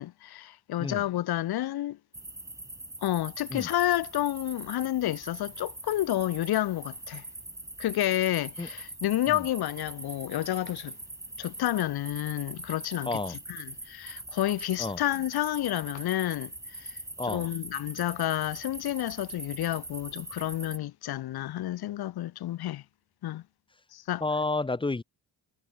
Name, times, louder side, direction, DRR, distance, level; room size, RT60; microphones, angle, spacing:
voice 1, 0.0-2.0 3.0-7.2 7.8-11.0 11.4-22.8 23.2-23.4 23.9-24.2, left 14 dB, 65° left, 0.6 m, -30 dB
sound 1, 2.1-20.8, right 1 dB, 10° right, 1.4 m, -43 dB
voice 2, 13.1-13.4 14.8-15.0 17.2-17.4 24.2-25.0, left 3 dB, 15° left, 0.6 m, -30 dB
wide cardioid pair, 150°, 40 cm